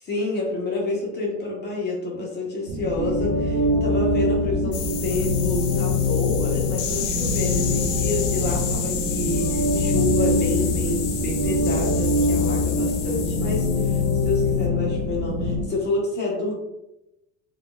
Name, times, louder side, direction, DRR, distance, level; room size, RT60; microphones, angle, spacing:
voice 1, 0.0-16.5, left 2 dB, 25° left, -3 dB, 0.6 m, -28 dB
sound 1, 2.7-15.7, right 1 dB, 90° right, 0.6 m, -31 dB
sound 2, 3.0-15.6, left 3 dB, 65° right, 1.1 m, -24 dB
sound 3, 4.7-14.6, left 8 dB, 75° left, 0.5 m, -32 dB
2.8 x 2.1 x 2.2 m, 0.90 s
supercardioid pair, 100°, 39 cm